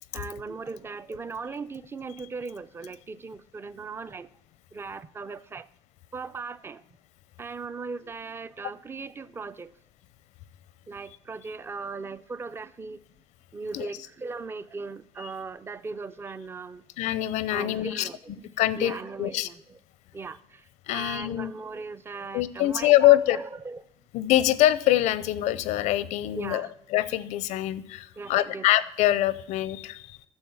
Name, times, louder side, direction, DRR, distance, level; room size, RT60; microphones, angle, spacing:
voice 1, 0.1-4.3 4.7-5.7 6.1-6.8 7.4-9.7 10.9-13.0 13.5-16.8 17.5-18.5 18.8-19.8 20.1-23.8 26.3-26.7 28.2-28.7, right 4 dB, 20° right, 15 dB, 0.5 m, -38 dB
voice 2, 17.0-18.1 18.6-19.5 20.9-21.5 22.3-23.4 24.1-30.2, left 14 dB, 85° left, 17 dB, 0.7 m, -24 dB
9.8 x 6.8 x 7.0 m, 0.75 s
cardioid pair, 135°, 12 cm